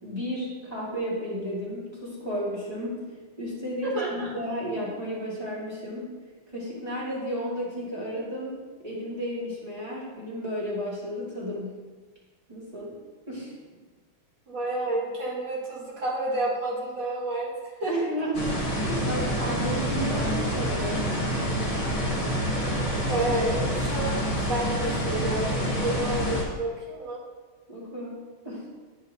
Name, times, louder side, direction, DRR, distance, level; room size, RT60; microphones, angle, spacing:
voice 1, 0.0-2.9 3.4-6.1 6.5-11.8 12.5-12.9 13.3-13.5 17.9-18.4 18.7-21.1 27.7-28.1 28.4-28.7, equal, 20° right, -8 dB, 2.1 m, -33 dB
voice 2, 3.8-4.3 14.5-18.1 22.5-22.8 23.1-24.2 24.5-27.2, right 1 dB, 60° right, -6 dB, 2.5 m, -30 dB
sound 1, 18.3-26.4, equal, 30° left, 1.7 m, -27 dB
11.5 x 5.0 x 2.7 m, 1.4 s
omnidirectional pair, 2.3 m